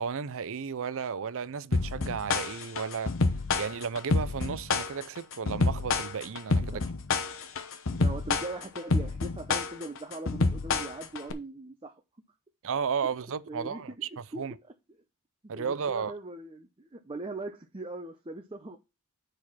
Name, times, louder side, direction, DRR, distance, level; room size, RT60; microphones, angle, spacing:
voice 1, 0.0-3.2 3.5-6.8 12.6-13.9 14.4-14.5 15.5-16.1, right 6 dB, 65° right, 0.5 m, -33 dB
sound 1, 1.7-11.3, left 3 dB, 65° left, 0.9 m, -28 dB
voice 2, 7.9-11.9 13.0-13.1 13.5-14.7 15.5-18.8, right 2 dB, 25° right, 0.8 m, -40 dB
6.4 x 4.9 x 5.7 m
head